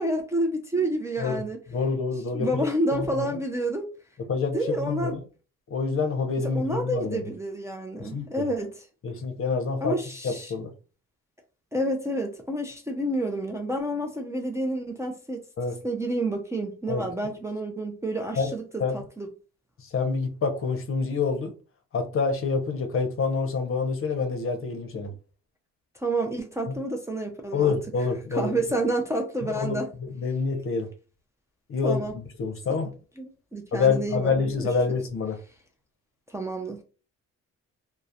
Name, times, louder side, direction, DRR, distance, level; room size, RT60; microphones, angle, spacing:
voice 1, 0.0-1.6 2.3-3.9 4.5-5.2 6.5-8.8 9.8-10.5 11.7-15.4 15.8-19.3 25.9-27.7 28.3-29.9 31.8-32.1 33.2-34.7 36.3-36.8, right 1 dB, 10° right, 0.4 m, -29 dB
voice 2, 1.7-2.7 2.9-3.3 4.3-5.2 5.7-7.2 8.0-8.5 9.0-10.0 10.2-10.7 15.6-15.8 16.9-17.0 18.4-18.5 18.8-19.0 19.8-21.5 21.9-25.1 26.7-26.8 27.5-28.5 29.4-30.9 31.7-32.9 33.7-35.4, left 4 dB, 45° left, 0.7 m, -27 dB
2.3 x 2.0 x 2.6 m
cardioid pair, 90°, 30 cm